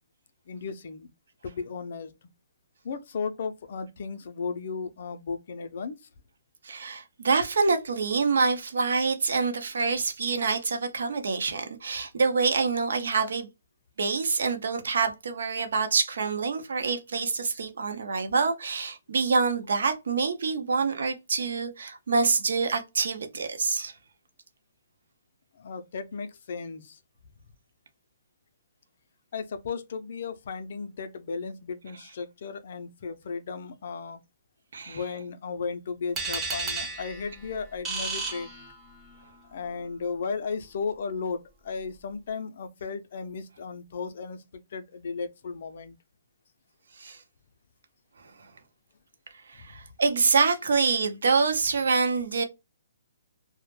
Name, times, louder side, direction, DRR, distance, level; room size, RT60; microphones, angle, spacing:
voice 1, 0.5-1.1 1.4-2.1 2.8-6.0 25.6-27.0 29.3-34.2 34.9-38.5 39.5-44.4 44.7-46.0, left 5 dB, 50° left, 0.4 m, -35 dB
voice 2, 6.6-13.5 14.0-23.9 34.7-35.0 47.0-47.2 49.5-52.4, right 4 dB, 70° right, 0.6 m, -26 dB
sound 1, 36.2-39.2, right 3 dB, 10° right, 0.5 m, -33 dB
2.1 x 2.0 x 3.0 m
hypercardioid pair, 170°, 0 cm